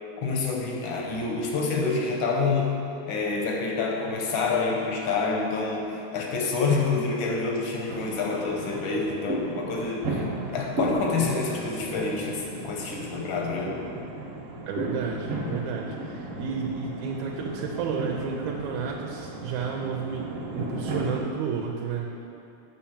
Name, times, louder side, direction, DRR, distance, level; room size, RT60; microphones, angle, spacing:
voice 1, 0.2-2.8 3.1-10.2 10.5-13.7, left 4 dB, 75° left, 0 dB, 1.1 m, -27 dB
sound 1, 7.9-21.2, right 1 dB, 65° right, 1.9 m, -34 dB
voice 2, 14.7-22.2, right 5 dB, 80° right, 0 dB, 1.9 m, -32 dB
7.1 x 5.6 x 7.2 m, 2.8 s
omnidirectional pair, 3.5 m